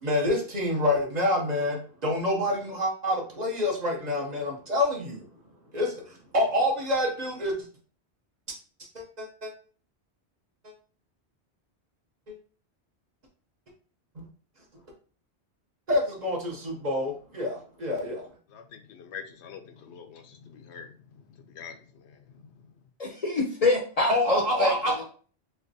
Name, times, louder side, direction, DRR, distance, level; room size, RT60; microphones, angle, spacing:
voice 1, 0.0-5.2 5.7-5.9 6.3-7.5 8.9-9.5 14.2-14.3 15.9-18.3 24.1-25.0, left 1 dB, 45° right, 0 dB, 0.8 m, -27 dB
voice 2, 18.5-21.0 21.4-22.5, left 7 dB, 75° left, 6 dB, 0.8 m, -45 dB
voice 3, 23.0-25.0, left 2 dB, 45° left, 0 dB, 0.6 m, -26 dB
3.3 x 2.9 x 2.6 m, 0.41 s
omnidirectional pair, 1.1 m